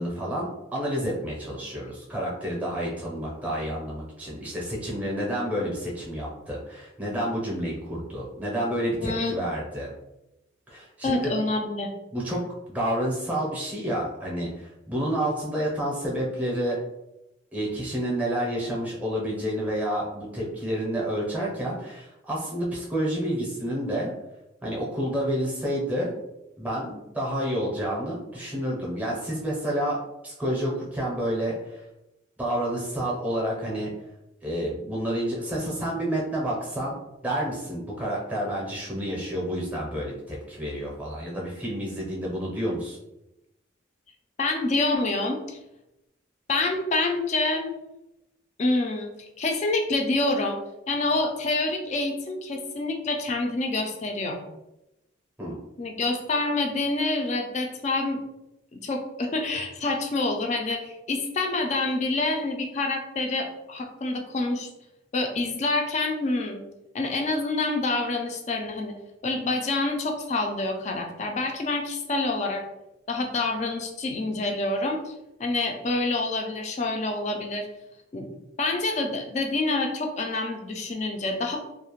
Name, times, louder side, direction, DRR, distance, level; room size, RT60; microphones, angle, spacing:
voice 1, 0.0-9.9 10.7-11.3 12.1-12.4 12.7-16.8 17.5-24.1 24.6-26.1 26.6-26.9 27.1-31.8 32.4-33.9 34.4-37.0 37.2-43.0 55.4-55.6, equal, 10° right, -4 dB, 0.6 m, -29 dB
voice 2, 9.0-9.3 11.0-11.9 26.9-27.0 44.4-45.6 46.5-47.7 48.6-50.6 50.9-54.4 55.8-58.2 58.7-64.7 65.1-66.6 66.9-68.9 69.2-72.6 73.1-75.1 75.4-77.7 78.1-78.3 78.6-81.6, left 2 dB, 35° left, 3 dB, 0.3 m, -27 dB
2.4 x 2.0 x 2.9 m, 0.92 s
head